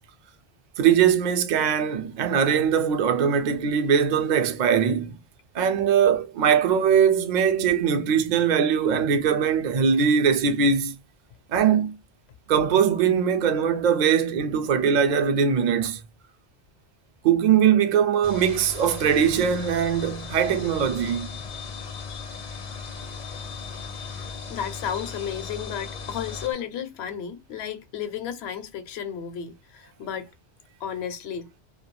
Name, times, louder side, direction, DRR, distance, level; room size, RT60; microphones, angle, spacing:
voice 1, 0.8-5.2 5.5-11.0 11.5-11.9 12.5-16.0 17.2-21.3, right 7 dB, 55° right, 0.5 m, -21 dB
sound 1, 18.2-26.5, left 4 dB, 50° left, 0.6 m, -37 dB
voice 2, 24.3-30.3 30.8-31.5, left 8 dB, 75° left, 0.9 m, -33 dB
2.3 x 2.2 x 2.9 m
omnidirectional pair, 1.1 m